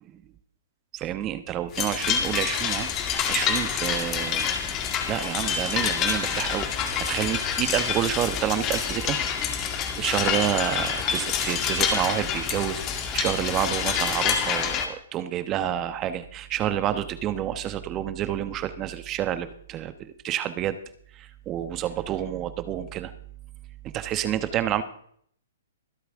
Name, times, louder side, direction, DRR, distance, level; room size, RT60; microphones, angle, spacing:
voice 1, 0.9-4.5 5.1-9.2 10.0-20.8 21.2-23.1 23.9-24.8, right 11 dB, 25° right, 12 dB, 1.1 m, -29 dB
sound 1, 1.7-14.9, left 7 dB, 30° left, 1.8 m, -27 dB
24.0 x 8.1 x 3.6 m, 0.63 s
hypercardioid pair, 135°, 0 cm